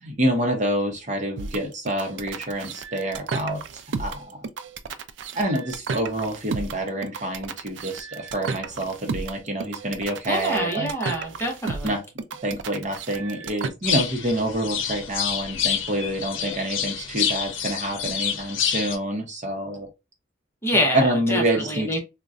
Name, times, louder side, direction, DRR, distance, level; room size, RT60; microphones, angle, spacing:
voice 1, 0.0-4.4 5.3-10.9 11.8-12.0 12.4-19.9 20.9-22.0, right 1 dB, 40° right, 0.8 m, -27 dB
sound 1, 1.4-13.7, right 5 dB, 70° right, 0.4 m, -33 dB
voice 2, 10.3-12.0 20.6-22.0, equal, 15° left, 0.8 m, -26 dB
sound 2, 13.8-19.0, left 8 dB, 85° left, 0.6 m, -28 dB
3.8 x 2.2 x 2.4 m
head